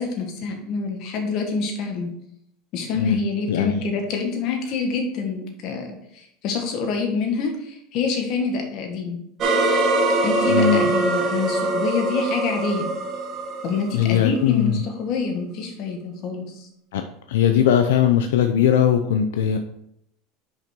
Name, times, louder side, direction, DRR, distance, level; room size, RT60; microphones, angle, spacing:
voice 1, 0.0-2.1 2.7-9.2 10.2-12.9 13.6-16.7, left 4 dB, 55° left, 3 dB, 1.7 m, -26 dB
voice 2, 3.5-3.8 10.5-10.9 13.9-14.8 16.9-17.0 17.3-19.6, left 9 dB, 90° left, 6 dB, 0.5 m, -19 dB
sound 1, 9.4-14.4, right 2 dB, 40° right, 1.3 m, -23 dB
5.7 x 5.2 x 4.5 m, 0.75 s
supercardioid pair, 125°, 0 cm